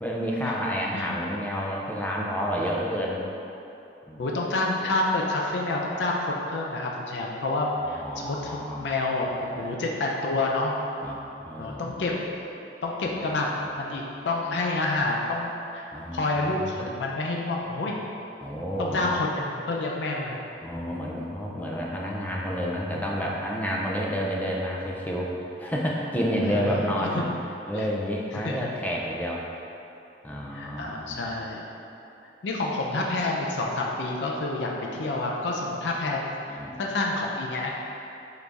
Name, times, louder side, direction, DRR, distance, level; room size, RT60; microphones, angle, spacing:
voice 1, 0.0-3.2 4.1-4.2 8.0-8.9 9.2-9.7 11.0-12.0 15.9-16.4 16.7-16.9 18.4-19.1 20.6-25.3 25.6-27.2 27.7-29.5 30.2-31.2 36.5-36.8, equal, 10° left, -3 dB, 0.4 m, -30 dB
voice 2, 4.2-10.7 11.6-12.2 12.8-18.0 18.8-20.4 26.4-27.3 27.7-27.9 28.3-28.7 30.5-31.7 32.4-37.8, left 2 dB, 75° left, -1 dB, 0.4 m, -28 dB
4.7 x 2.6 x 3.4 m, 2.9 s
head